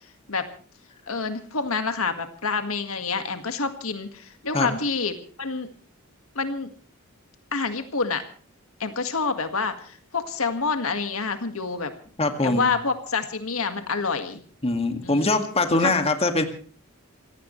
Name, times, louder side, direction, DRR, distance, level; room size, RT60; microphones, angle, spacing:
voice 1, 1.1-5.7 6.4-6.7 7.5-8.2 8.8-11.9 12.4-14.4 15.0-15.4 15.8-15.9, left 4 dB, 70° left, 8 dB, 1.8 m, -27 dB
voice 2, 12.2-12.7 14.6-16.4, left 2 dB, 30° left, 6 dB, 2.0 m, -22 dB
26.5 x 17.0 x 3.2 m, 0.42 s
head